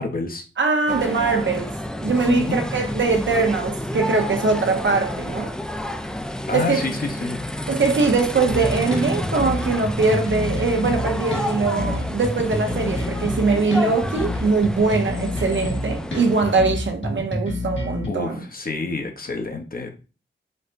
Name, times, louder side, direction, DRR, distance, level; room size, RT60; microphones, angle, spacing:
voice 1, 0.0-0.4 2.3-2.6 6.5-7.4 18.1-19.9, left 3 dB, 45° left, 0.7 m, -28 dB
voice 2, 0.6-1.7 2.0-5.6 6.5-6.8 7.7-18.4, right 4 dB, 65° right, 0.7 m, -22 dB
sound 1, 0.9-16.6, left 1 dB, 5° left, 0.4 m, -30 dB
sound 2, 8.5-18.1, left 1 dB, 65° left, 1.1 m, -28 dB
4.1 x 2.1 x 2.5 m
cardioid pair, 45°, 21 cm